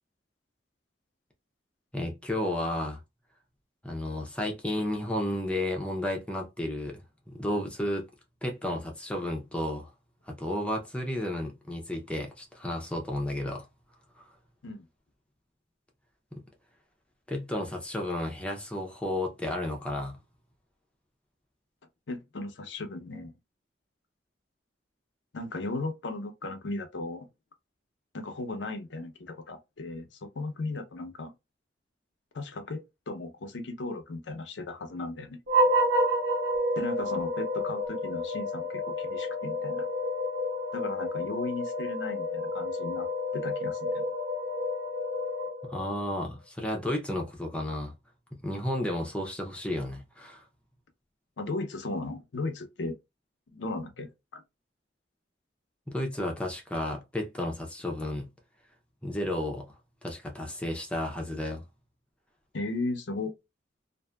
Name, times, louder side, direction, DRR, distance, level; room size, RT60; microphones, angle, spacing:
voice 1, 1.9-3.0 3.8-8.1 8.4-9.9 10.3-13.6 16.3-16.4 17.3-20.2 45.6-47.9 48.4-50.4 55.9-58.3 59.0-59.7 60.0-61.6, left 1 dB, 5° left, 0.7 m, -32 dB
voice 2, 22.1-23.3 25.3-27.3 28.1-31.3 32.3-35.4 36.8-39.9 40.7-44.0 51.4-53.0 53.5-54.4 62.5-63.3, left 2 dB, 85° left, 0.7 m, -36 dB
sound 1, 35.5-46.0, equal, 70° right, 1.2 m, -30 dB
2.6 x 2.6 x 2.3 m
head